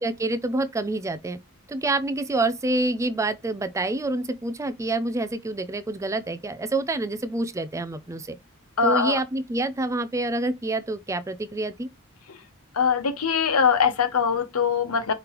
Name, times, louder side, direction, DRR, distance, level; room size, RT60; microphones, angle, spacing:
voice 1, 0.0-1.4 1.7-8.4 8.8-11.9, right 2 dB, 15° right, 0.4 m, -27 dB
voice 2, 8.8-9.2 12.7-15.1, left 6 dB, 80° left, 0.9 m, -22 dB
5.1 x 3.2 x 2.9 m
head